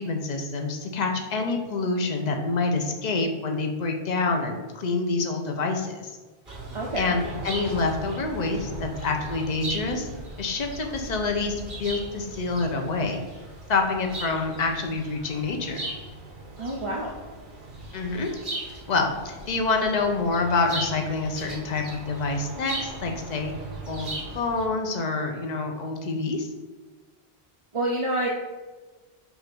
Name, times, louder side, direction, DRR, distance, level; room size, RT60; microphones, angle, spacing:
voice 1, 0.0-6.2 7.0-10.1 10.4-13.2 13.7-15.9 17.9-18.3 18.9-23.5 23.8-26.5, left 3 dB, 45° left, 3 dB, 0.9 m, -27 dB
sound 1, 6.4-24.7, right 2 dB, 50° right, 1.7 m, -38 dB
voice 2, 6.7-7.1 16.6-17.1 27.7-28.3, right 1 dB, 35° right, -2 dB, 0.7 m, -27 dB
8.0 x 2.7 x 6.1 m, 1.3 s
omnidirectional pair, 1.1 m